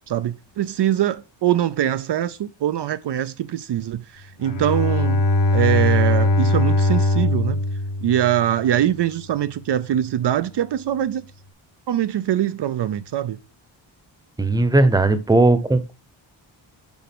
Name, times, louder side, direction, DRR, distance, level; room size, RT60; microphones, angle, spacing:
voice 1, 0.1-5.3 5.5-7.6 8.0-11.2 11.9-13.4, right 11 dB, 60° right, 0.6 m, -23 dB
Bowed string instrument, 4.4-8.7, left 2 dB, 60° left, 1.5 m, -20 dB
voice 2, 14.4-15.9, right 2 dB, 10° right, 0.9 m, -17 dB
7.1 x 4.9 x 6.1 m
wide cardioid pair, 120°, 46 cm